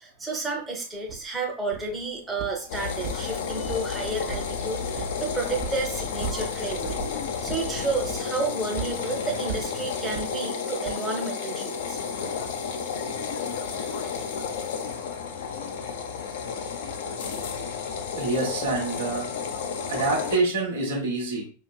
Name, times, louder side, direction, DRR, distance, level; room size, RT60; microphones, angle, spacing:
voice 1, 0.0-7.0 7.4-12.0, right 3 dB, 10° right, -1 dB, 0.9 m, -31 dB
sound 1, 1.1-1.2 1.7-2.0 2.4-2.7 3.0-3.9 4.3-4.6 5.0-5.2 5.6-5.8 6.2-6.5 6.8-7.1 7.5-7.7 8.1-8.4 8.8-9.0 9.5-9.7 10.1-10.3 10.8-11.0, right 6 dB, 40° right, 0.8 m, -35 dB
sound 2, 2.7-20.4, left 6 dB, 55° left, 0.6 m, -32 dB
voice 2, 18.1-19.4 19.9-21.5, right 3 dB, 60° right, 0 dB, 1.1 m, -26 dB
5.0 x 2.8 x 2.3 m, 0.37 s
figure-of-eight pair, 90°, 0 cm